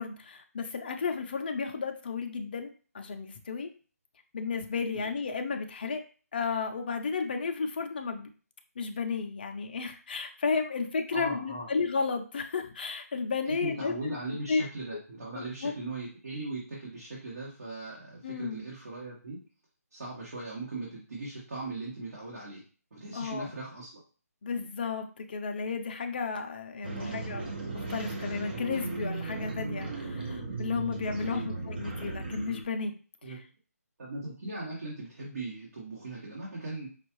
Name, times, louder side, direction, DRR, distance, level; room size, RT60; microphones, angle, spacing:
voice 1, 0.0-3.7 4.3-6.0 6.3-8.3 8.8-14.7 14.9-15.0 15.3-15.7 18.2-18.6 23.1-23.5 24.4-32.9 33.3-33.4, left 5 dB, 35° left, 5 dB, 0.5 m, -33 dB
voice 2, 11.1-11.7 13.5-19.4 19.9-22.6 22.9-23.9 27.0-27.2 31.3-31.7 33.2-33.4 34.0-36.9, right 2 dB, 60° right, -6 dB, 1.6 m, -39 dB
sound 1, 26.8-32.6, right 3 dB, 35° right, 0.7 m, -36 dB
5.2 x 2.3 x 3.1 m, 0.39 s
hypercardioid pair, 165°, 9 cm